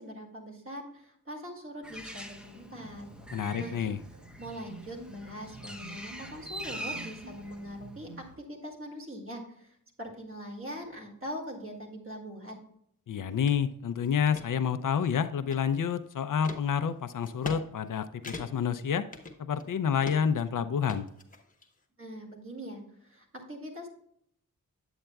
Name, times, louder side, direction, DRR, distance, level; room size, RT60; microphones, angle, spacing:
voice 1, 0.0-3.1 3.6-3.7 4.4-12.5 22.0-23.9, equal, 40° right, -1 dB, 2.2 m, -42 dB
Bird, 1.8-8.3, equal, 5° right, 0.7 m, -44 dB
sound 1, 2.7-8.4, right 3 dB, 60° right, 0.9 m, -50 dB
voice 2, 3.3-4.0 13.1-19.1 19.4-21.1, left 7 dB, 65° left, 11 dB, 0.5 m, -29 dB
sound 2, 13.5-13.6 14.0-14.5 15.0-15.9 16.4-16.6 17.2-17.6 17.9-18.0 18.2-18.7 19.1-19.7 20.0-20.4 20.9-21.7, left 3 dB, 25° left, 1.0 m, -41 dB
8.7 x 8.0 x 2.3 m, 0.70 s
wide cardioid pair, 115°, 34 cm